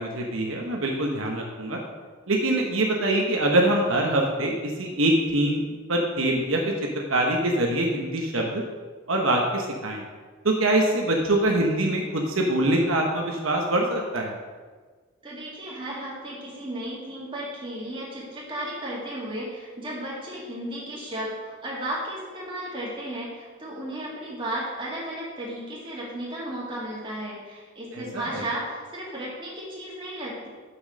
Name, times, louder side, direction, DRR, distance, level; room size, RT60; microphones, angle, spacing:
voice 1, 0.0-1.8 2.3-5.6 5.9-8.6 9.1-10.0 10.4-14.3 27.9-28.4, right 1 dB, 80° right, 0 dB, 1.2 m, -24 dB
voice 2, 15.2-30.5, right 1 dB, 25° right, -5 dB, 2.3 m, -34 dB
6.3 x 6.3 x 6.4 m, 1.4 s
head